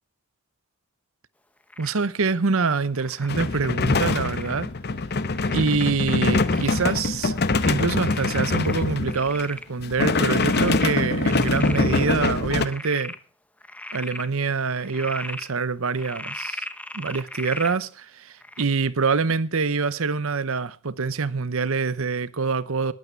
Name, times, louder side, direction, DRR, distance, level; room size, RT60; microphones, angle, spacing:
Frog, 1.7-2.0 2.9-3.3 4.1-4.6 5.3-5.8 6.3-6.9 7.3-7.4 8.0-9.7 10.0-12.0 12.5-13.2 13.6-14.3 14.8-15.5 16.0-17.8 18.4-18.6, left 1 dB, 5° left, 0.8 m, -37 dB
voice 1, 1.8-4.7 5.5-7.4 7.6-13.1 13.9-16.6 16.9-22.9, right 4 dB, 65° right, 0.8 m, -25 dB
sound 1, 3.3-9.4 9.8-12.7, left 3 dB, 45° left, 0.9 m, -24 dB
20.5 x 8.6 x 4.6 m
head